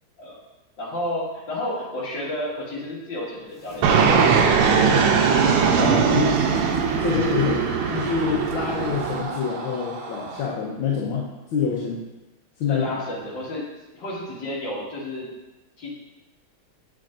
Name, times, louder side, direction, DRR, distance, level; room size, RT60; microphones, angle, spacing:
voice 1, 0.8-5.1 12.6-13.7 13.9-15.3 15.8-15.9, left 1 dB, 60° left, -6 dB, 2.3 m, -32 dB
sound 1, 3.5-9.2, left 1 dB, 25° left, 0.7 m, -39 dB
Fixed-wing aircraft airplane, 3.8-9.2, right 6 dB, 90° right, 1.6 m, -20 dB
voice 2, 5.8-6.4 7.0-11.2 11.5-12.0 12.6-12.9, left 6 dB, 75° left, -4 dB, 1.6 m, -26 dB
Screaming, 6.4-10.6, right 3 dB, 65° right, 1.5 m, -38 dB
7.3 x 6.2 x 2.5 m, 1.0 s
omnidirectional pair, 2.3 m